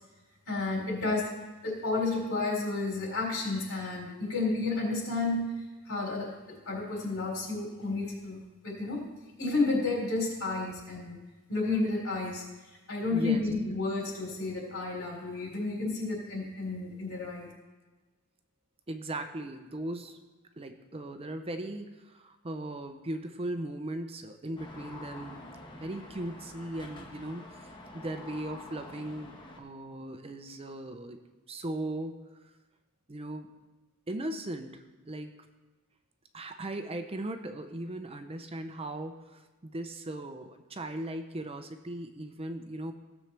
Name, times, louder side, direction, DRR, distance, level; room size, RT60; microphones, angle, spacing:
voice 1, 0.5-1.3 1.6-5.5 5.9-9.1 9.4-11.2 11.5-12.4 12.9-17.5, left 3 dB, 75° left, -2 dB, 3.9 m, -31 dB
voice 2, 13.1-13.4 18.9-20.2 20.6-25.4 25.7-27.5 27.9-31.2 31.5-32.1 33.1-33.5 34.1-35.4 36.3-42.9, right 1 dB, 25° right, 7 dB, 0.6 m, -38 dB
sound 1, 24.6-29.6, left 1 dB, 20° left, 1.2 m, -47 dB
16.5 x 7.3 x 3.3 m, 1.2 s
head